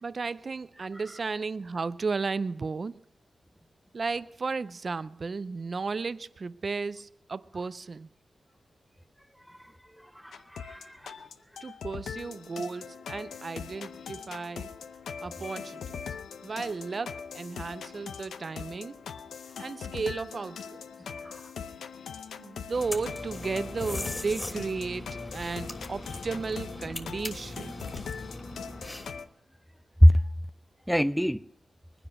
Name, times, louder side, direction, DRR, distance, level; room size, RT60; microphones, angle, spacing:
voice 1, 0.0-3.0 3.9-8.1 11.6-14.7 15.2-16.1 16.4-19.0 19.6-20.8 22.4-27.9, right 4 dB, 55° right, 0.5 m, -34 dB
voice 2, 10.2-11.1 21.1-21.4 30.0-30.2 30.9-31.4, equal, ahead, 0.5 m, -22 dB
sound 1, 10.3-29.3, left 6 dB, 90° left, 0.6 m, -41 dB
sound 2, 22.7-29.2, left 1 dB, 25° left, 3.1 m, -40 dB
20.0 x 10.0 x 6.0 m
cardioid pair, 45°, 0 cm